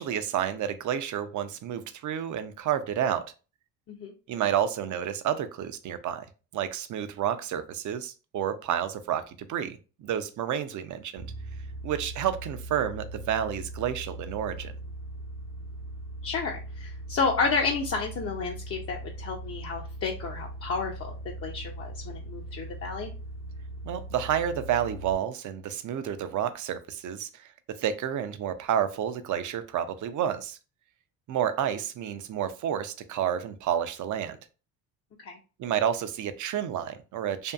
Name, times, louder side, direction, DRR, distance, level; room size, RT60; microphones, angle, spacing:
voice 1, 0.0-3.3 4.3-6.3 6.5-11.3 11.8-14.7 23.8-30.6 31.3-34.4 35.6-37.5, right 9 dB, 45° right, 11 dB, 0.5 m, -30 dB
sound 1, 11.2-25.1, right 1 dB, 75° right, 0.8 m, -40 dB
voice 2, 16.2-21.1 21.4-23.1 35.2-35.4, left 4 dB, 35° left, 0 dB, 0.5 m, -31 dB
2.6 x 2.4 x 2.3 m, 0.34 s
supercardioid pair, 70°, 42 cm